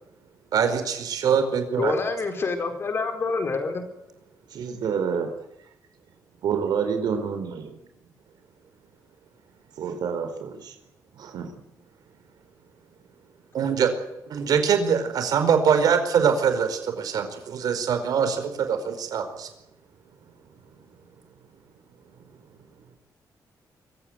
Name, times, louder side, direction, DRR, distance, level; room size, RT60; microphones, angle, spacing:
voice 1, 0.5-1.9 13.5-13.9 14.3-19.5, right 7 dB, 65° right, 8 dB, 4.9 m, -23 dB
voice 2, 1.8-3.9, left 4 dB, 35° left, 6 dB, 4.4 m, -27 dB
voice 3, 4.5-5.3 6.4-7.7 9.8-10.7 11.1-11.5, right 6 dB, 85° right, 6 dB, 4.4 m, -28 dB
24.5 x 16.0 x 9.7 m, 0.90 s
wide cardioid pair, 180°, 7 cm